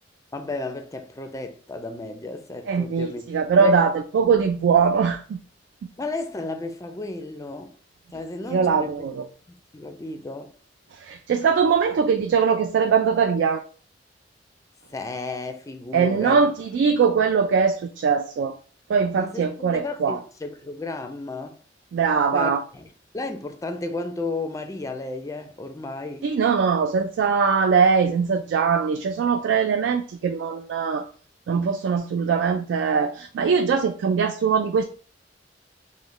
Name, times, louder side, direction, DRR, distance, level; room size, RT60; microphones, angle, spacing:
voice 1, 0.3-3.2 3.6-3.8 6.0-7.8 8.1-9.0 9.5-10.5 14.9-16.5 19.2-21.6 22.3-22.8 23.1-26.2, left 2 dB, 20° left, 0.4 m, -33 dB
voice 2, 2.7-5.4 8.5-9.2 10.9-13.6 15.9-18.6 18.9-20.2 21.9-22.6 26.2-31.1 31.5-34.8, right 6 dB, 75° right, 0.3 m, -21 dB
3.1 x 2.1 x 3.8 m
head